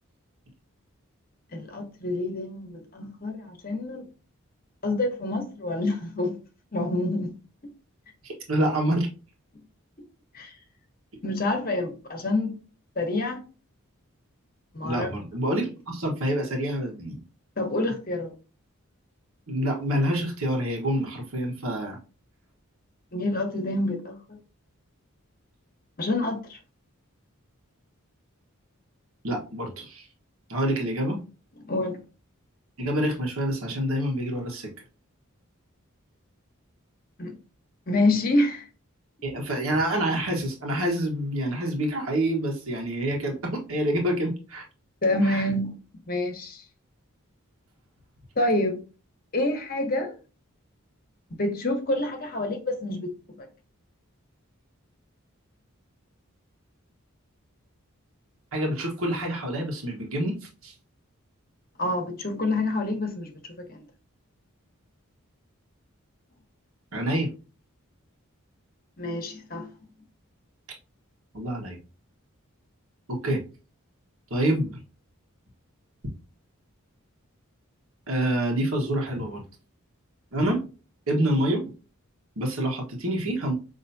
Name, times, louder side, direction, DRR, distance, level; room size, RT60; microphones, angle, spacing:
voice 1, 1.5-4.1 4.8-6.3 6.7-7.3 10.3-10.5 11.2-12.6 13.0-13.4 14.7-15.1 17.6-18.3 23.1-24.4 26.0-26.6 31.6-32.0 37.2-37.3 37.9-38.7 45.0-45.8 46.1-46.6 48.4-48.8 49.3-50.1 51.3-53.1 53.4-53.5 61.8-63.3 63.7-63.8 69.0-69.7, left 2 dB, 45° left, 1.1 m, -27 dB
voice 2, 8.2-9.1 14.8-17.2 19.5-22.0 29.2-30.1 30.5-31.2 32.8-34.7 39.2-44.7 45.2-45.5 58.5-60.7 66.9-67.3 71.3-71.8 73.1-73.4 74.3-74.8 76.0-76.1 78.1-79.4 80.3-80.6 81.1-81.7 82.4-83.5, right 1 dB, 75° right, 1.3 m, -27 dB
5.6 x 3.0 x 2.7 m
head